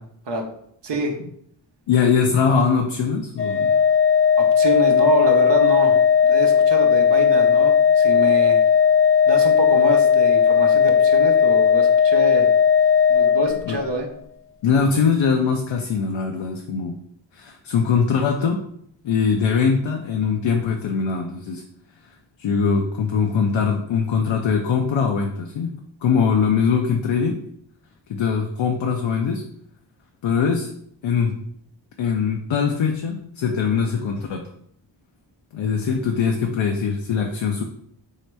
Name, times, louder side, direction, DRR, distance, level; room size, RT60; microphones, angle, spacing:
voice 1, 0.8-1.2 4.4-8.6 9.3-12.5 13.1-14.1, right 1 dB, 65° right, 3 dB, 0.8 m, -26 dB
voice 2, 1.9-3.7 13.6-13.8 14.6-17.0 17.3-18.7 19.0-21.6 22.4-25.7 26.0-27.4 28.1-29.4 30.2-30.7 31.0-31.4 32.0-34.4 35.5-37.6, left 6 dB, 85° left, 2 dB, 0.5 m, -21 dB
Organ, 3.4-14.1, left 7 dB, 30° left, 0.5 m, -16 dB
3.1 x 2.8 x 4.5 m, 0.70 s
cardioid pair, 60°, 45 cm